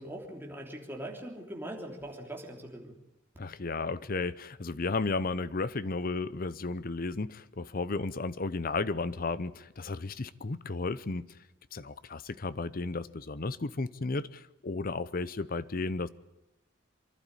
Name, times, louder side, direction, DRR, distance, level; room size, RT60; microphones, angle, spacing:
voice 1, 0.0-2.9, right 1 dB, 10° right, 3.4 m, -41 dB
voice 2, 3.4-11.3 11.7-16.1, left 3 dB, 45° left, 0.7 m, -33 dB
24.5 x 12.0 x 9.7 m
head